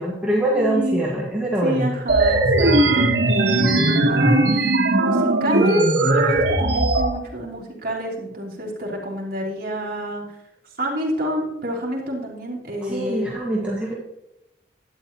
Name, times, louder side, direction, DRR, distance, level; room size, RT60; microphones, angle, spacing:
voice 1, 0.0-1.9 12.8-13.9, right 1 dB, 5° right, -5 dB, 1.6 m, -23 dB
voice 2, 0.5-1.0 1.6-10.3 10.8-13.3, equal, 55° right, -3 dB, 2.9 m, -27 dB
sound 1, 2.1-7.1, right 2 dB, 80° right, 1.3 m, -18 dB
12.0 x 9.3 x 2.9 m, 0.87 s
head